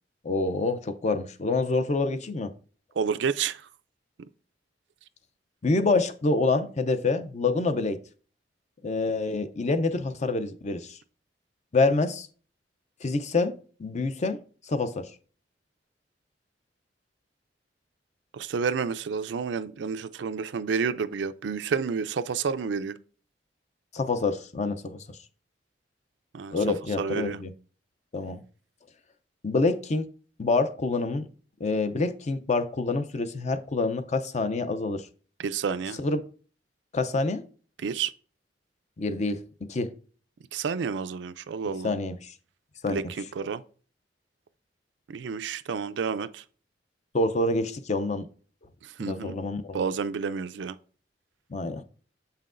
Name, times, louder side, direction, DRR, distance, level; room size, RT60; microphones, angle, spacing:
voice 1, 0.2-2.5 5.6-8.0 8.8-11.0 11.7-12.3 13.0-14.4 14.7-15.1 23.9-25.0 26.5-27.5 28.1-28.4 29.4-30.1 30.4-31.3 31.6-35.0 36.0-36.2 36.9-37.4 39.0-39.4 39.7-39.9 41.8-42.3 42.8-43.0 47.1-48.3 49.0-49.8 51.5-51.8, left 3 dB, 40° left, 0.5 m, -27 dB
voice 2, 3.0-3.6 18.3-23.0 26.3-26.5 27.0-27.4 35.4-36.0 37.8-38.1 40.5-41.9 42.9-43.6 45.1-46.4 48.8-49.4 49.7-50.8, right 6 dB, 80° right, 0.4 m, -30 dB
7.4 x 5.7 x 2.5 m
head